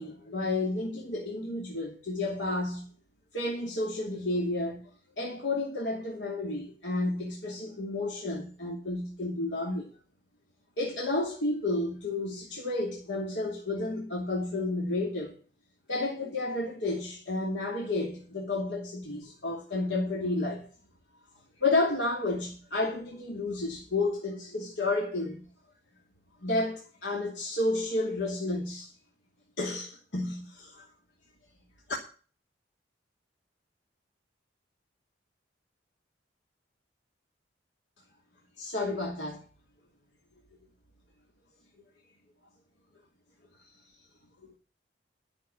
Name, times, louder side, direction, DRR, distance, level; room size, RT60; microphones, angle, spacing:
voice 1, 0.0-2.9 3.3-4.8 5.2-9.9 10.8-15.3 15.9-20.7 21.6-25.5 26.4-28.9 29.6-30.9 38.6-39.4, left 2 dB, 80° left, 2.7 m, -31 dB
12.5 x 6.6 x 8.8 m
head